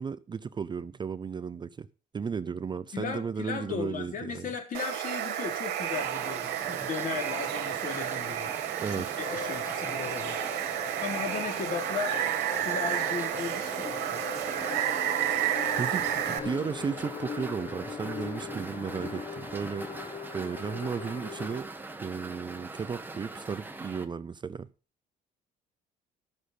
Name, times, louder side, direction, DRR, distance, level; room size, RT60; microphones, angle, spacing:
voice 1, 0.0-1.9 2.1-4.5 8.8-9.1 15.8-19.9 20.3-21.7 22.0-24.7, right 6 dB, 25° right, 0.5 m, -34 dB
voice 2, 2.9-10.4 11.0-12.2 12.6-14.4, left 6 dB, 50° left, 3.7 m, -36 dB
Water, 4.7-16.4, right 11 dB, 80° right, 1.5 m, -31 dB
sound 1, 5.9-24.0, right 2 dB, 10° right, 1.4 m, -43 dB
sound 2, 9.2-21.6, left 6 dB, 35° left, 0.9 m, -41 dB
12.5 x 6.4 x 6.6 m
cardioid pair, 110°, 17 cm